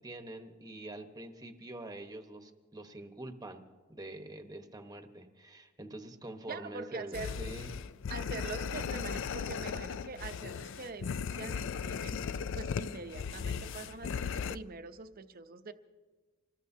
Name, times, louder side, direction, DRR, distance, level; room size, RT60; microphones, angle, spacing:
voice 1, 0.0-7.7, right 1 dB, 20° right, 6 dB, 1.1 m, -45 dB
voice 2, 6.5-7.3 8.1-15.7, right 4 dB, 45° right, 9 dB, 0.7 m, -44 dB
sound 1, 7.1-14.6, left 6 dB, 65° left, 0.4 m, -37 dB
26.0 x 19.5 x 2.8 m, 1.3 s
head